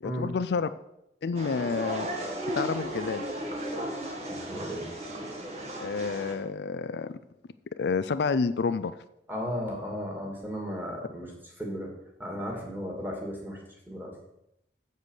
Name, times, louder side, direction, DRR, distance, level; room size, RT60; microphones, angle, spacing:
voice 1, 0.0-0.7 1.2-2.1 2.5-3.3 5.8-7.2 7.8-8.9, left 5 dB, 70° left, 13 dB, 0.4 m, -29 dB
sound 1, 1.3-6.3, right 1 dB, 40° right, 1.8 m, -35 dB
voice 2, 4.3-4.9 9.3-11.3 11.6-11.9 12.2-13.6 13.9-14.2, equal, 10° right, 0 dB, 2.4 m, -35 dB
7.8 x 7.5 x 6.5 m, 0.82 s
head